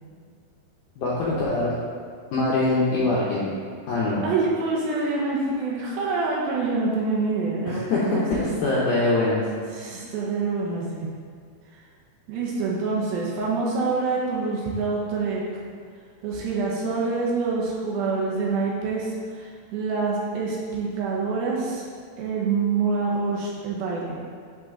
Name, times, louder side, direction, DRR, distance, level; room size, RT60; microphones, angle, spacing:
voice 1, 1.0-1.7 2.3-3.5 3.9-4.2 7.7-9.4, left 2 dB, 75° left, -6 dB, 1.8 m, -23 dB
voice 2, 4.2-8.5 9.7-11.1 12.3-15.4 16.2-21.9 22.2-24.2, right 4 dB, 75° right, -4 dB, 2.6 m, -26 dB
10.0 x 4.0 x 3.7 m, 2.1 s
omnidirectional pair, 4.6 m